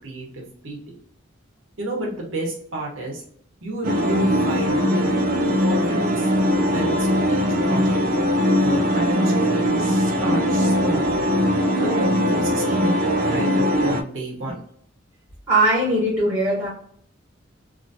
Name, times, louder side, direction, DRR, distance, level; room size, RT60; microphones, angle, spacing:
voice 1, 0.0-1.0 1.8-3.2 3.6-5.2 5.5-6.3 6.6-8.0 8.6-11.1 11.8-14.6, right 1 dB, 85° right, -2 dB, 1.1 m, -31 dB
sound 1, 3.8-14.0, equal, 45° right, 0.4 m, -20 dB
voice 2, 15.5-16.7, right 1 dB, 20° right, -8 dB, 1.2 m, -20 dB
2.8 x 2.7 x 2.7 m, 0.62 s
head